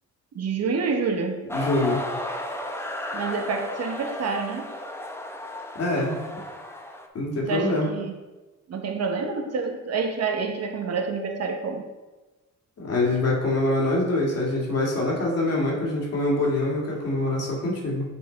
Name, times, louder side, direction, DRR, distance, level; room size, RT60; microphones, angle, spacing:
voice 1, 0.3-1.4 3.1-4.8 7.5-8.2 8.7-11.9, right 4 dB, 55° right, 4 dB, 1.0 m, -28 dB
voice 2, 1.5-2.0 5.7-6.2 7.1-7.9 12.8-18.0, left 2 dB, 55° left, -3 dB, 2.2 m, -24 dB
sound 1, 1.5-7.1, left 1 dB, 10° left, 0.7 m, -34 dB
7.3 x 4.3 x 4.0 m, 1.2 s
cardioid pair, 90°, 30 cm